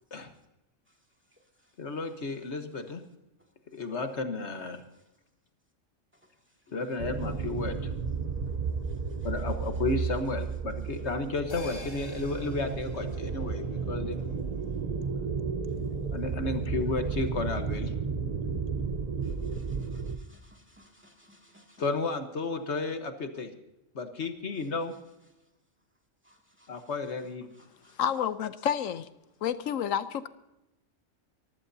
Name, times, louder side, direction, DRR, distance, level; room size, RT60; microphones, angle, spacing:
voice 1, 1.8-3.0 3.7-4.8 6.7-7.8 9.2-14.3 16.1-17.9 21.8-23.5 23.9-24.9 26.7-27.5, left 3 dB, 60° left, 7 dB, 1.5 m, -33 dB
sound 1, 7.0-20.2, right 5 dB, 35° right, 0.9 m, -33 dB
sound 2, 11.5-16.2 16.5-16.6, left 3 dB, 45° left, 3.6 m, -50 dB
voice 2, 19.5-21.8 26.3-26.7 27.8-27.9, equal, 10° right, 1 dB, 2.3 m, -59 dB
voice 3, 28.0-29.1 29.4-30.3, left 9 dB, 85° left, 13 dB, 1.1 m, -29 dB
24.0 x 15.0 x 2.7 m, 0.91 s
omnidirectional pair, 1.3 m